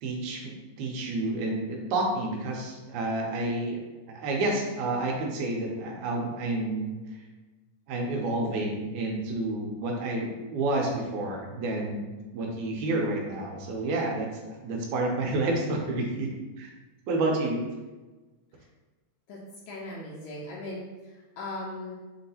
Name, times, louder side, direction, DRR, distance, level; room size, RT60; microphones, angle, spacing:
voice 1, 0.0-0.5 0.8-3.8 4.1-6.9 7.9-12.0 12.3-16.3 16.6-16.7 17.1-17.7, right 2 dB, 75° right, 0 dB, 2.0 m, -29 dB
voice 2, 19.7-22.0, left 2 dB, 75° left, -5 dB, 1.9 m, -38 dB
5.8 x 2.8 x 2.8 m, 1.2 s
omnidirectional pair, 3.6 m